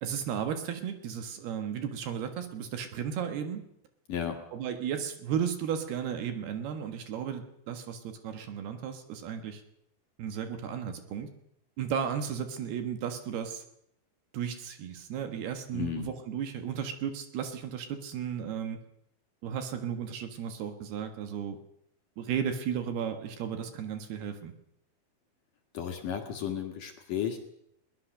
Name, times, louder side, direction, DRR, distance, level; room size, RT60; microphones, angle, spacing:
voice 1, 0.0-3.6 4.5-9.6 10.2-11.3 11.8-13.6 14.3-18.8 19.4-21.6 22.2-24.5, right 8 dB, 65° right, 7 dB, 3.3 m, -34 dB
voice 2, 4.1-4.4 15.7-16.1 25.7-27.4, left 8 dB, 55° left, 3 dB, 2.8 m, -33 dB
21.5 x 19.0 x 6.5 m, 0.75 s
omnidirectional pair, 5.2 m